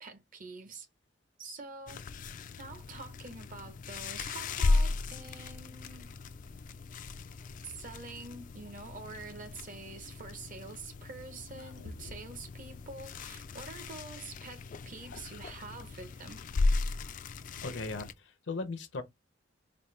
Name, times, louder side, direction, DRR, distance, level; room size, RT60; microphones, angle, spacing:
voice 1, 0.0-0.9 1.4-2.0 2.6-6.1 7.6-16.4, right 3 dB, 45° right, 0.8 m, -46 dB
sound 1, 1.9-18.1, left 3 dB, 45° left, 0.3 m, -36 dB
voice 2, 15.1-15.6 17.6-19.0, left 3 dB, 70° left, 0.7 m, -39 dB
4.2 x 2.2 x 3.2 m
head